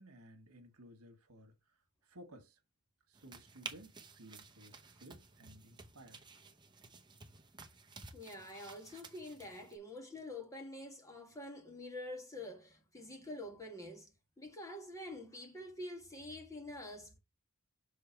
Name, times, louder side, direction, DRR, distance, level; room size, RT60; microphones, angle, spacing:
voice 1, 0.0-2.6 3.1-6.3, right 1 dB, 80° right, 1.5 m, -57 dB
sound 1, 3.1-9.8, right 4 dB, 20° right, 0.8 m, -53 dB
voice 2, 8.1-14.1 14.4-17.2, left 1 dB, 15° left, 1.7 m, -47 dB
6.6 x 3.4 x 4.5 m
head